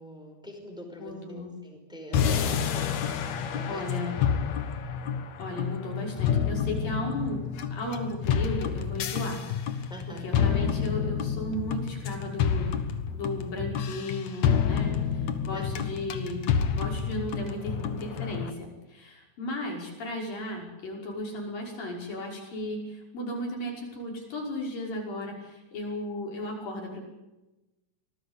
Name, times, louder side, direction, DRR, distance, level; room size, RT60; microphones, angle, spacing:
voice 1, 0.0-2.8 3.5-3.8 9.9-10.3 15.5-15.6, equal, ahead, 2 dB, 4.8 m, -44 dB
voice 2, 1.0-1.6 3.7-4.2 5.4-7.4 7.7-12.8 13.1-16.5 16.7-27.0, left 1 dB, 80° left, 0 dB, 7.6 m, -35 dB
sound 1, 2.1-18.5, left 7 dB, 60° left, 2.5 m, -29 dB
25.5 x 19.5 x 8.4 m, 1.0 s
omnidirectional pair, 3.9 m